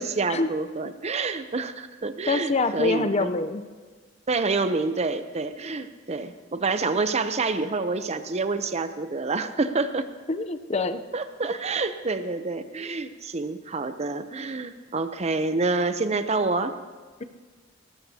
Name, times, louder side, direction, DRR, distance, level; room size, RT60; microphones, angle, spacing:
voice 1, 0.0-3.3 4.3-10.1 11.1-16.7, right 3 dB, 35° right, 10 dB, 0.7 m, -27 dB
voice 2, 2.3-3.6 10.3-11.0, left 3 dB, 35° left, 11 dB, 0.6 m, -25 dB
19.5 x 19.0 x 2.8 m, 1.4 s
head